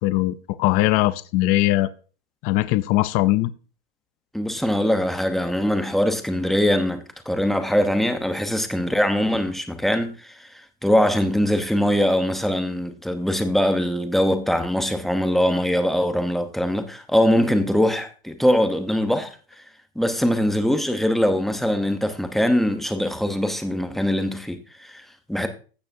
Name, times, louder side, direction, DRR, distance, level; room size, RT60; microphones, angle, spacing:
voice 1, 0.0-1.9 2.4-3.5, left 17 dB, 30° left, 0.4 m, -20 dB
voice 2, 4.3-10.5 10.8-19.3 20.0-25.5, equal, ahead, 0.8 m, -22 dB
15.0 x 6.5 x 2.7 m
supercardioid pair, 140°, 29 cm